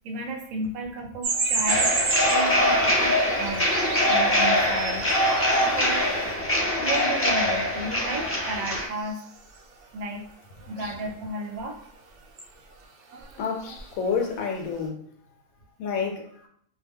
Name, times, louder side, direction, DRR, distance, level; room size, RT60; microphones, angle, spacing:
voice 1, 0.0-1.9 2.3-3.7 4.1-5.0 5.8-6.1 6.8-9.2 9.9-10.2 10.7-11.8, right 2 dB, 90° right, 2 dB, 1.1 m, -33 dB
sound 1, 1.2-6.4 6.9-7.0 9.0-9.3 9.6-9.7 10.6-11.1 12.4-12.5 13.1-13.4 13.6-13.9, right 4 dB, 70° right, 0.8 m, -31 dB
sound 2, 1.7-8.8, left 1 dB, 20° left, 0.4 m, -23 dB
voice 2, 13.4-15.0 15.8-16.5, left 6 dB, 85° left, 3 dB, 1.0 m, -29 dB
2.4 x 2.1 x 3.4 m, 0.66 s
omnidirectional pair, 1.4 m